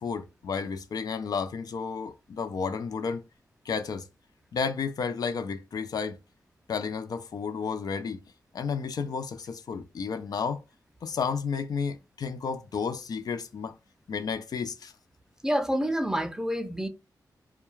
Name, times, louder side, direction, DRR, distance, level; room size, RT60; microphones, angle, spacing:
voice 1, 0.0-3.2 3.7-4.1 4.5-6.2 6.7-8.2 8.5-10.6 11.0-13.7 14.1-14.9, left 5 dB, 65° left, 0.3 m, -32 dB
voice 2, 15.4-16.9, equal, 10° right, 0.3 m, -28 dB
2.3 x 2.3 x 2.9 m
wide cardioid pair, 115°, 7 cm